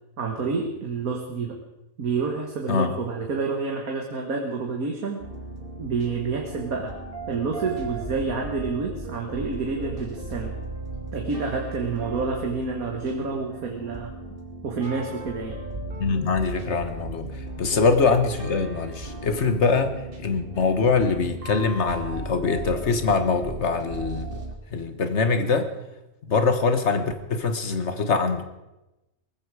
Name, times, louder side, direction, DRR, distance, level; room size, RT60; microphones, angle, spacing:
voice 1, 0.2-1.6 2.0-5.2 5.8-7.0 7.3-10.6 11.1-14.1 14.6-15.6 17.7-17.9, right 4 dB, 85° right, 2 dB, 2.0 m, -28 dB
sound 1, 5.2-24.6, right 2 dB, 40° right, 2.5 m, -36 dB
voice 2, 16.0-19.9 20.2-24.4 24.7-25.7 26.2-28.4, left 4 dB, 55° left, 9 dB, 1.6 m, -23 dB
19.0 x 15.0 x 4.9 m, 0.97 s
omnidirectional pair, 1.5 m